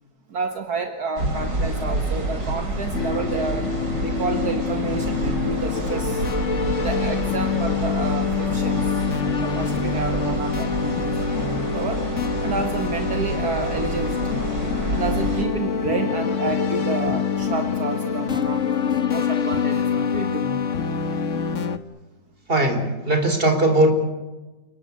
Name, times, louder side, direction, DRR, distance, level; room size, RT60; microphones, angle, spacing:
voice 1, 0.3-3.7 4.0-6.3 6.7-9.0 9.4-12.0 12.4-14.5 14.9-18.6 19.1-20.8 21.1-21.2, right 4 dB, 60° right, 5 dB, 2.2 m, -30 dB
sound 1, 1.2-15.5, right 1 dB, 90° right, 5.0 m, -29 dB
sound 2, 2.9-21.8, left 6 dB, 45° left, 1.6 m, -25 dB
voice 2, 22.5-23.9, right 1 dB, 30° right, 6 dB, 4.3 m, -19 dB
29.0 x 19.5 x 8.4 m, 1.1 s
omnidirectional pair, 1.9 m